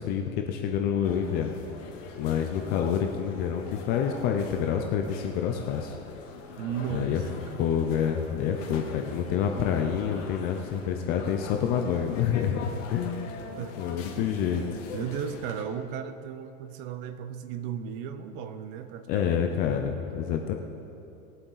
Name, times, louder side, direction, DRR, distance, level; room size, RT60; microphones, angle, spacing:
voice 1, 0.0-1.5 2.2-5.9 6.9-7.3 7.6-13.4 13.8-14.9 19.1-20.5, left 8 dB, 25° left, 4 dB, 0.4 m, -28 dB
sound 1, 1.0-15.6, left 5 dB, 55° left, 2.1 m, -42 dB
voice 2, 6.6-7.6 8.7-9.8 13.6-13.8 14.2-14.7 14.9-19.5, right 8 dB, 40° right, 11 dB, 0.7 m, -36 dB
20.0 x 7.8 x 4.0 m, 2.7 s
supercardioid pair, 145°, 43 cm